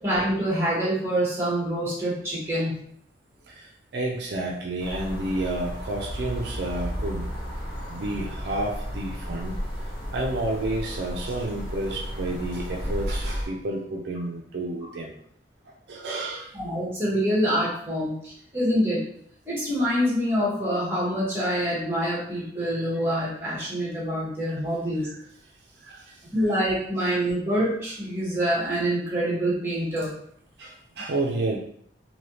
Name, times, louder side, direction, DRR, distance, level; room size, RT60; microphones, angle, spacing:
voice 1, 0.0-2.7 16.5-19.0 19.5-25.1 26.3-30.1, equal, 15° right, -6 dB, 1.2 m, -26 dB
voice 2, 3.9-7.3 7.9-9.5 10.1-15.1 15.9-16.5 24.5-24.6 25.0-25.1 25.8-26.0 30.6-31.6, right 2 dB, 65° right, 0 dB, 0.4 m, -30 dB
sound 1, 4.8-13.4, equal, 30° left, 0.9 m, -33 dB
3.3 x 2.7 x 2.8 m, 0.66 s
head